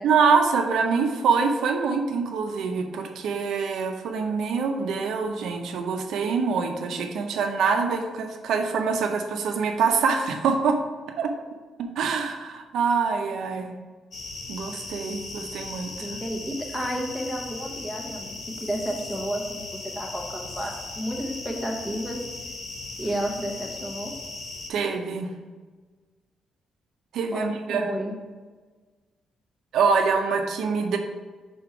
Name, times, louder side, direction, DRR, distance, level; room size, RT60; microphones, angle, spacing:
voice 1, 0.0-10.8 11.2-11.3 11.8-13.7 14.5-16.1 24.7-25.3 27.1-27.9 29.7-31.0, right 5 dB, 70° right, 4 dB, 0.6 m, -25 dB
sound 1, 14.1-24.7, left 3 dB, 40° left, 0.8 m, -38 dB
voice 2, 16.0-22.2 23.0-24.1 27.3-28.1, equal, 5° left, 1 dB, 0.7 m, -31 dB
5.1 x 4.2 x 4.7 m, 1.4 s
cardioid pair, 170°, 0 cm